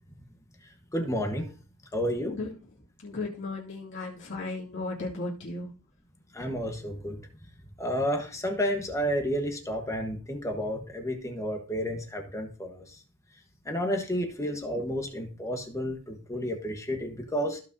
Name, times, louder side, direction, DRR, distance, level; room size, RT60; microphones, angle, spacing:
voice 1, 0.9-1.5 1.9-2.4 6.3-7.2 7.8-12.8 13.6-17.6, equal, 15° left, 3 dB, 1.2 m, -31 dB
voice 2, 2.2-2.7 3.0-5.7, left 2 dB, 55° left, -4 dB, 2.2 m, -35 dB
14.5 x 5.1 x 2.7 m, 0.36 s
head